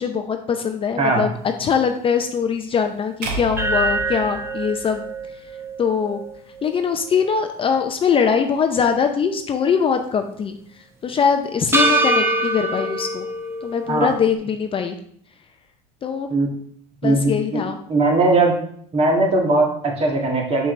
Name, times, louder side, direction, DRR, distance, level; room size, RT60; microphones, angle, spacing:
voice 1, 0.0-1.3 1.6-5.0 5.8-6.2 6.6-10.6 11.0-13.3 13.6-15.0 16.0-16.3 17.0-17.8, left 6 dB, 30° left, 6 dB, 0.6 m, -22 dB
sound 1, 3.2-5.5, right 1 dB, 60° right, 1.3 m, -32 dB
sound 2, 3.6-7.8 8.2-8.3 11.7-14.4, right 2 dB, 15° right, 0.8 m, -25 dB
voice 2, 17.0-17.6 17.9-18.6 18.9-20.7, right 2 dB, 35° right, 0 dB, 1.8 m, -19 dB
6.5 x 5.6 x 3.2 m, 0.62 s
supercardioid pair, 95°, 18 cm